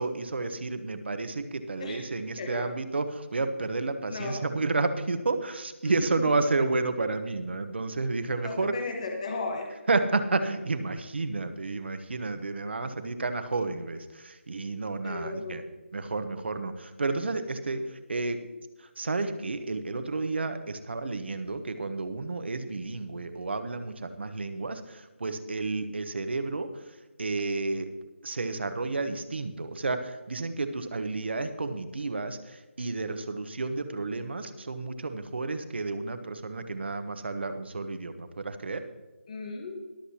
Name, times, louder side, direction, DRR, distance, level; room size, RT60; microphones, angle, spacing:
voice 1, 0.0-8.7 9.9-15.6 15.9-18.4 18.8-27.9 28.2-38.8, right 3 dB, 60° right, 9 dB, 1.2 m, -31 dB
voice 2, 2.4-2.7 4.0-4.4 5.8-6.1 8.4-9.7 15.0-15.7 31.2-31.3 39.3-39.8, left 3 dB, 30° left, 3 dB, 1.3 m, -35 dB
22.0 x 7.9 x 2.9 m, 1.2 s
figure-of-eight pair, 165°, 7 cm